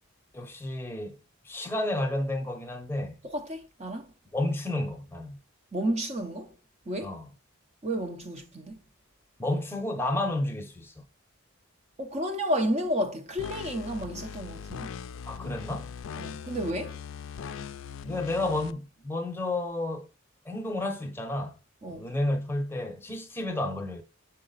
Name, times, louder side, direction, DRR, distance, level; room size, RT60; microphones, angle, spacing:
voice 1, 0.3-1.2 1.4-3.2 4.3-5.4 7.0-7.3 9.4-11.0 15.2-15.9 18.0-20.1 20.4-21.6 21.9-24.0, left 1 dB, 10° left, 0.8 m, -31 dB
voice 2, 3.3-4.1 5.7-6.5 6.9-7.2 7.8-8.8 12.0-14.9 16.2-17.0 21.8-22.1, equal, 30° right, 0.7 m, -31 dB
sound 1, 13.4-18.7, left 7 dB, 65° left, 0.4 m, -40 dB
6.5 x 4.8 x 4.0 m
head